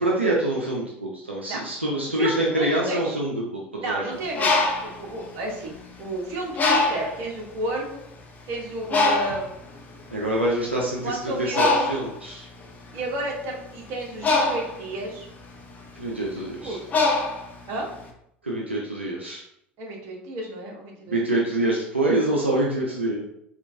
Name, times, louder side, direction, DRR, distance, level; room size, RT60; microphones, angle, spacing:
voice 1, 0.0-4.0 10.1-11.2 11.6-12.4 15.9-16.8 18.4-19.4 21.1-23.2, right 1 dB, 85° right, -3 dB, 0.5 m, -25 dB
voice 2, 2.1-3.2 3.8-5.7 6.0-8.0 8.5-9.6 11.0-11.9 12.9-15.3 16.3-16.8 17.7-17.9 19.8-21.4, right 2 dB, 50° right, -1 dB, 1.0 m, -32 dB
Bird, 4.2-6.0 6.6-7.2 7.9-8.1 8.3-18.0, left 3 dB, 25° left, 0.7 m, -25 dB
4.4 x 2.4 x 2.6 m, 0.74 s
figure-of-eight pair, 70°, 6 cm